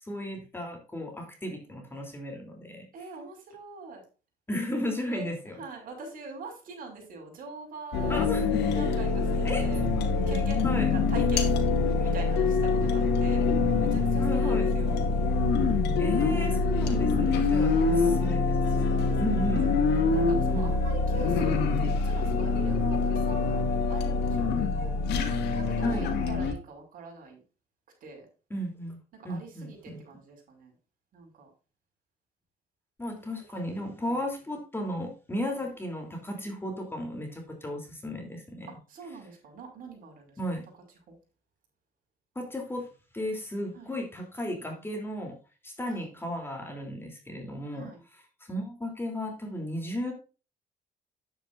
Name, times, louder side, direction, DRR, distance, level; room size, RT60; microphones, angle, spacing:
voice 1, 0.1-2.9 4.5-5.6 8.1-8.6 9.4-9.6 10.6-10.9 14.2-14.7 16.0-18.9 19.2-19.7 20.5-20.8 25.8-26.1 28.5-29.0 29.2-30.0 33.0-38.7 40.4-40.6 42.3-42.9 43.1-45.3 45.6-48.2 48.5-50.1, equal, 15° left, 3 dB, 3.2 m, -34 dB
voice 2, 2.9-4.0 5.1-8.3 8.7-9.9 10.3-11.6 11.9-13.4 13.8-15.0 17.1-18.2 18.6-19.2 20.1-23.6 23.9-25.0 25.5-27.4 28.0-28.3 29.1-30.8 31.1-31.5 33.5-34.2 35.5-35.6 38.7-40.4 41.1-41.2 43.7-43.9 45.9-46.1 47.7-48.0, right 3 dB, 55° right, 2 dB, 5.5 m, -44 dB
sound 1, 7.9-26.5, left 4 dB, 80° left, 2.1 m, -25 dB
10.5 x 8.8 x 2.6 m, 0.34 s
cardioid pair, 110°, 17 cm